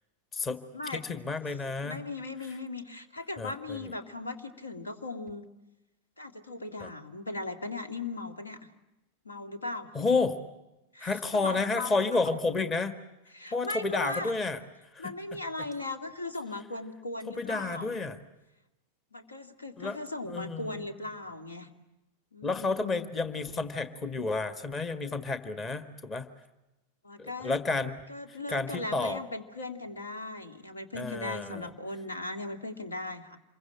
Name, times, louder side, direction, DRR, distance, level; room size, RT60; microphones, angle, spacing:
voice 1, 0.9-2.0 3.4-3.9 6.8-6.9 9.9-10.4 11.0-12.9 13.5-14.6 14.9-15.1 17.3-18.2 19.8-20.0 20.3-20.8 22.4-26.3 27.2-28.0 28.3-29.2 30.9-31.7, left 3 dB, 20° left, 11 dB, 1.7 m, -31 dB
voice 2, 1.8-5.4 6.2-8.6 9.2-9.9 10.9-12.4 13.3-14.4 15.0-18.0 19.1-21.7 22.3-23.1 27.0-27.6 28.1-33.4, left 2 dB, 75° left, 8 dB, 2.2 m, -38 dB
27.0 x 23.0 x 8.8 m, 0.98 s
figure-of-eight pair, 90°, 0 cm